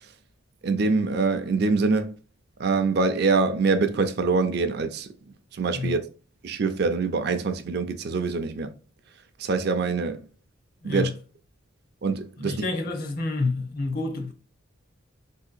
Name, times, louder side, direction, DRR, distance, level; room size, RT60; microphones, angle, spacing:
voice 1, 0.6-2.1 2.6-5.1 5.5-6.0 6.4-8.7 9.4-10.2 10.8-11.1 12.0-12.6, right 4 dB, 50° right, 0.4 m, -24 dB
voice 2, 10.8-11.1 12.4-14.3, left 3 dB, 45° left, 0.7 m, -28 dB
3.7 x 2.8 x 2.4 m
head